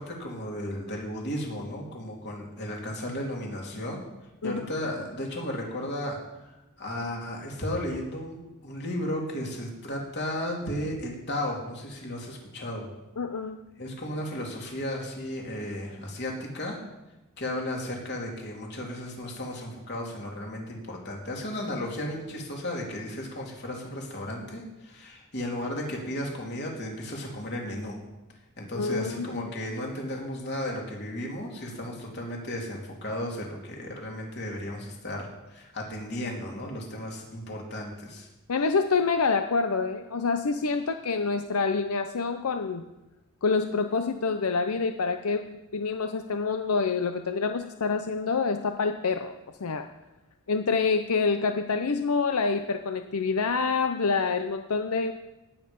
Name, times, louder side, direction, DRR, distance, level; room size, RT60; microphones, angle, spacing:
voice 1, 0.0-4.0 4.4-6.2 6.8-8.4 8.6-12.9 13.8-16.8 17.4-28.0 28.6-38.3, left 1 dB, 50° left, -1 dB, 3.1 m, -34 dB
voice 2, 13.2-13.6 28.7-29.4 38.5-42.9 43.4-49.3 49.6-49.9 50.5-55.1, left 4 dB, 85° left, 8 dB, 0.7 m, -27 dB
18.0 x 8.8 x 5.4 m, 0.99 s
head